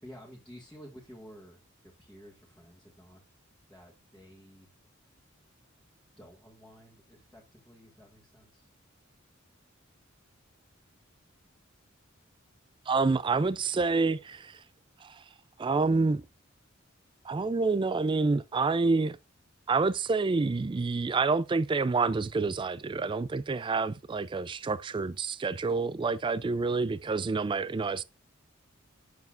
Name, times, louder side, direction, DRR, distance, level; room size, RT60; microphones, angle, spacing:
voice 1, 0.0-3.2 3.7-4.7 5.6-8.7, equal, 5° left, 1.7 m, -52 dB
voice 2, 12.9-14.6 15.0-15.2 15.6-16.2 17.2-19.2 19.7-28.0, right 4 dB, 25° right, 0.3 m, -28 dB
8.3 x 7.0 x 2.5 m
head